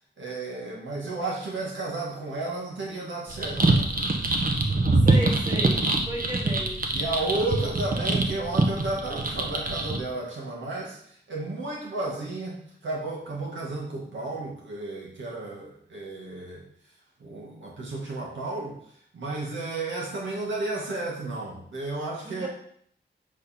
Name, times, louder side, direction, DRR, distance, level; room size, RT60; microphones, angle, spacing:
voice 1, 0.2-3.9 6.9-16.6 17.2-18.8 19.1-22.5, right 2 dB, 75° right, -3 dB, 1.9 m, -33 dB
sound 1, 3.3-10.0, right 2 dB, 45° right, 1.3 m, -24 dB
voice 2, 5.0-6.8 22.2-22.5, right 1 dB, 25° right, -2 dB, 3.2 m, -34 dB
8.2 x 5.4 x 4.4 m, 0.65 s
cardioid pair, 70°, 20 cm